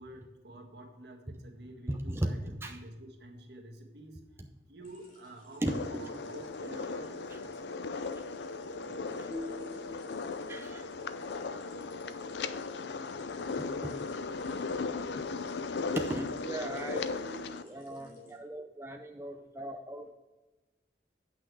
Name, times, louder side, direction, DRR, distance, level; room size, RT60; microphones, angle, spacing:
voice 1, 0.0-4.3 4.7-7.3, right 1 dB, 75° right, 2 dB, 1.6 m, -49 dB
voice 2, 1.9-2.8 5.6-6.1 7.3-7.4 9.1-9.3 10.5-10.9 11.5-11.9 13.6-13.9 15.2-15.3 15.9-20.1, right 1 dB, 15° right, 3 dB, 0.6 m, -37 dB
sound 1, 4.8-18.4, left 1 dB, 50° left, 2.7 m, -56 dB
sound 2, 5.7-17.6, left 4 dB, 80° left, 0.5 m, -37 dB
sound 3, 9.3-11.5, left 3 dB, 15° left, 3.3 m, -45 dB
8.6 x 6.1 x 4.7 m, 1.1 s
head